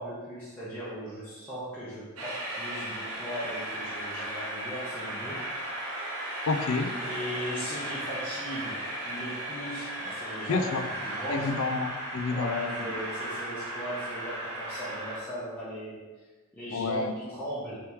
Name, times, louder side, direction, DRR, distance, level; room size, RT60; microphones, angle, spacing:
voice 1, 0.0-5.4 7.0-10.7 11.0-11.5 12.3-16.0 16.5-17.8, equal, 10° left, -11 dB, 0.8 m, -38 dB
Train, 2.2-15.2, right 1 dB, 90° right, 1.0 m, -36 dB
voice 2, 6.5-7.0 10.5-10.8 11.3-12.9 16.7-17.1, left 4 dB, 65° left, 7 dB, 0.4 m, -29 dB
4.4 x 3.0 x 3.5 m, 1.3 s
head